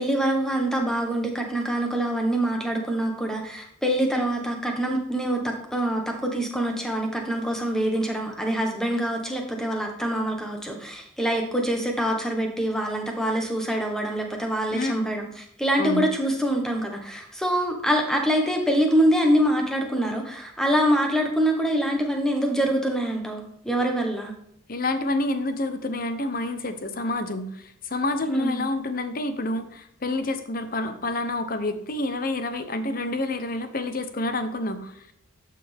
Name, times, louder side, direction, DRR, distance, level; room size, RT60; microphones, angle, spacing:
voice 1, 0.0-24.3 28.3-28.6, right 1 dB, 5° left, 2 dB, 1.3 m, -25 dB
voice 2, 14.7-15.1 15.8-16.0 24.7-35.1, left 2 dB, 45° left, 9 dB, 0.8 m, -28 dB
11.5 x 6.0 x 3.5 m, 0.72 s
head